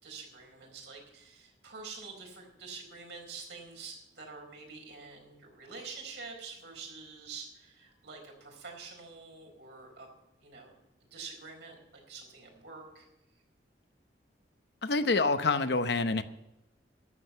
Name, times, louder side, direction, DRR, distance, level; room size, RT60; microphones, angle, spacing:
voice 1, 0.0-10.1 10.4-10.7 11.1-11.7 12.1-13.1, right 4 dB, 75° right, 1 dB, 4.5 m, -46 dB
voice 2, 14.8-16.2, left 3 dB, 65° left, 10 dB, 0.8 m, -27 dB
12.0 x 7.6 x 9.1 m, 0.91 s
head